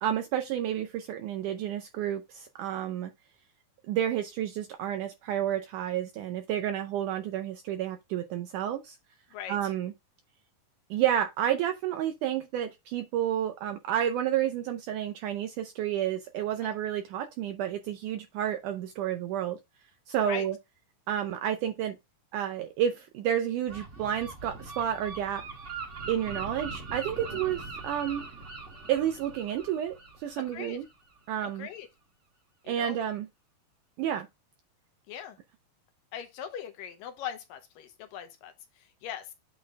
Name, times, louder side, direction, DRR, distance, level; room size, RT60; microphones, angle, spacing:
voice 1, 0.0-3.1 3.9-9.0 9.5-9.9 10.9-19.6 20.1-20.6 21.1-22.0 22.3-25.4 26.1-28.2 28.9-30.8 31.3-31.7 32.7-33.3 34.0-34.3, right 10 dB, 80° right, 1.8 m, -30 dB
Gull seagull, 23.7-31.2, right 3 dB, 45° right, 1.0 m, -41 dB
voice 2, 30.4-30.8 31.4-31.9 32.6-33.0 35.1-35.4 36.1-39.3, left 9 dB, 75° left, 2.4 m, -40 dB
8.5 x 3.9 x 3.4 m
omnidirectional pair, 4.2 m